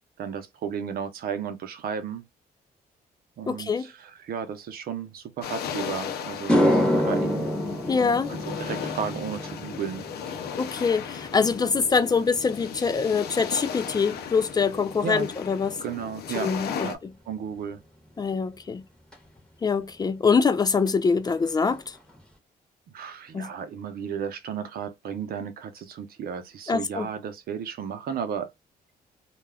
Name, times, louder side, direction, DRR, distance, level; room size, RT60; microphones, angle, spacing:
voice 1, 0.2-2.2 3.4-7.5 8.3-10.1 15.0-15.3 15.8-16.5 16.8-17.0 17.3-17.8 22.9-28.5, right 7 dB, 70° right, 0.6 m, -34 dB
voice 2, 3.5-3.9 7.9-8.3 10.6-15.8 16.4-17.1 18.2-18.8 19.6-21.9 23.3-23.5 26.7-27.1, left 5 dB, 25° left, 0.3 m, -24 dB
sound 1, 5.4-17.0, left 7 dB, 85° left, 0.5 m, -36 dB
sound 2, 6.3-14.8 15.1-15.5 19.1-19.2 20.9-21.0 21.2-21.4 21.6-22.2, left 1 dB, 5° left, 1.1 m, -29 dB
2.2 x 2.2 x 3.3 m
cardioid pair, 110°, 16 cm